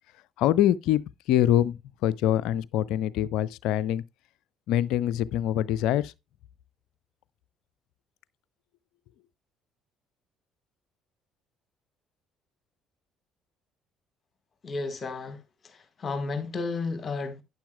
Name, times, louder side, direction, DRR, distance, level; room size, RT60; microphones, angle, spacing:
voice 1, 0.4-1.0 1.3-4.0 4.7-6.1, left 12 dB, 60° left, 0.4 m, -24 dB
voice 2, 14.6-15.4 15.6-17.4, left 3 dB, 35° left, 1.6 m, -32 dB
11.5 x 9.7 x 2.3 m
figure-of-eight pair, 50°, 0 cm